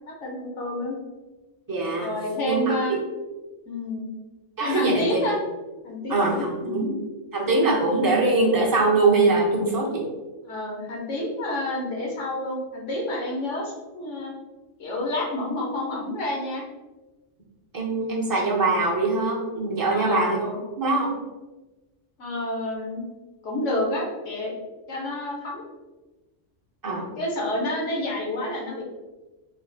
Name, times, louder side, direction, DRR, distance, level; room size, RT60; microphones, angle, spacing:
voice 1, 0.1-1.0 2.0-2.9 3.7-4.1 4.6-5.4 5.8-6.9 10.4-14.3 14.8-16.6 19.9-20.6 22.2-23.0 23.4-24.6 24.9-25.6 27.2-28.8, left 1 dB, 70° left, -1 dB, 1.2 m, -29 dB
voice 2, 1.7-2.1 2.5-3.0 4.6-5.3 6.1-6.9 7.3-10.1 17.7-20.4 20.8-21.1 26.8-27.1, right 3 dB, 20° right, -2 dB, 0.6 m, -22 dB
4.1 x 2.0 x 4.0 m, 1.2 s
omnidirectional pair, 1.3 m